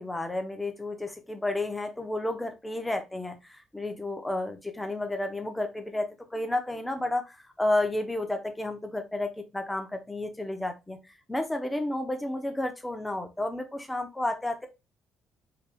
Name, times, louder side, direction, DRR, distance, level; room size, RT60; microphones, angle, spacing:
voice 1, 0.0-11.0 11.3-14.7, left 1 dB, 5° left, 6 dB, 0.7 m, -31 dB
4.7 x 3.4 x 2.3 m, 0.24 s
cardioid pair, 155°, 0 cm